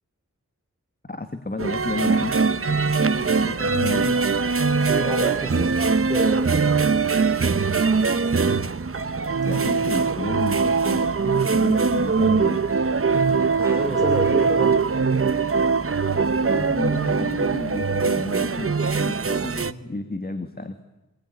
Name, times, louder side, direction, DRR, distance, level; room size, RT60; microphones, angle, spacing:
voice 1, 1.1-2.4 2.7-4.2 9.4-12.6 16.5-20.8, left 2 dB, 30° left, 7 dB, 1.8 m, -32 dB
sound 1, 1.6-19.7, right 4 dB, 45° right, 0.9 m, -22 dB
voice 2, 4.8-5.8 6.1-6.5 13.6-14.8, right 1 dB, 10° right, 1 dB, 3.5 m, -29 dB
25.0 x 20.5 x 9.7 m, 0.98 s
wide cardioid pair, 85°, 31 cm